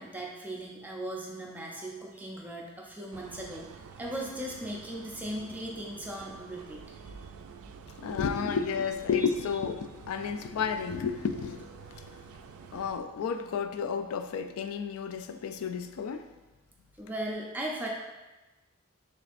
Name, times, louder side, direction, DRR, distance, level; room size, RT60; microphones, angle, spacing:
voice 1, 0.0-7.2 17.0-17.9, right 1 dB, 10° right, -2 dB, 0.5 m, -38 dB
sound 1, 3.1-13.0, right 5 dB, 80° right, 0.3 m, -49 dB
voice 2, 8.0-11.7 12.7-16.3, left 6 dB, 85° left, 9 dB, 0.3 m, -31 dB
6.5 x 2.5 x 2.5 m, 1.1 s
head